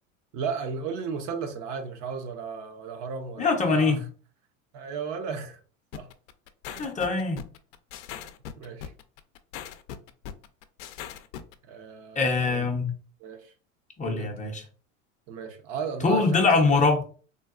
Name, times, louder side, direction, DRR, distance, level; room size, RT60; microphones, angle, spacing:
voice 1, 0.3-4.0 4.7-5.6 5.9-6.1 6.7-6.9 8.6-8.9 11.6-12.7 13.2-13.5 14.0-14.6 15.3-16.8, right 5 dB, 45° right, 0.6 m, -35 dB
voice 2, 3.4-4.0 6.8-7.4 12.2-12.9 14.0-14.6 16.0-17.0, left 4 dB, 20° left, 0.6 m, -23 dB
sound 1, 5.9-11.5, left 10 dB, 65° left, 0.5 m, -39 dB
3.7 x 2.3 x 2.4 m
hypercardioid pair, 85°, 39 cm